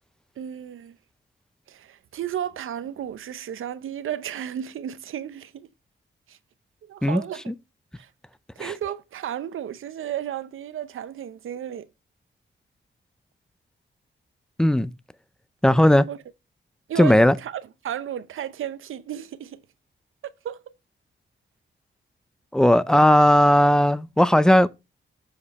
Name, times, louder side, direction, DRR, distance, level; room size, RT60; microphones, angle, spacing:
voice 1, 0.4-1.0 1.7-5.7 6.3-6.4 6.8-7.5 8.0-8.1 8.6-11.9 16.1-16.2 16.9-19.6 20.4-20.6, right 10 dB, 85° right, 0.7 m, -33 dB
voice 2, 14.6-14.9 15.6-16.1 17.0-17.3 22.5-24.7, left 1 dB, 5° left, 0.5 m, -17 dB
7.4 x 4.9 x 4.1 m
cardioid pair, 85°, 21 cm